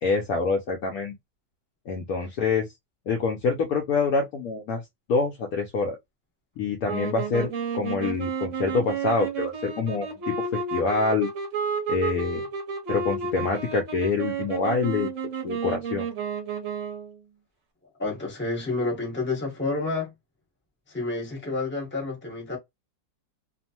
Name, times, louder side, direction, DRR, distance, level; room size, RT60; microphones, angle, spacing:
voice 1, 0.0-1.1 1.9-2.7 3.1-4.8 5.1-6.0 6.6-11.3 11.9-12.4 12.9-15.1 15.4-16.1, left 4 dB, 70° left, 0.9 m, -26 dB
sound 1, 6.8-17.2, right 5 dB, 55° right, 1.0 m, -31 dB
voice 2, 18.0-20.1 20.9-22.6, left 3 dB, 10° left, 0.8 m, -29 dB
2.9 x 2.1 x 2.7 m
omnidirectional pair, 1.9 m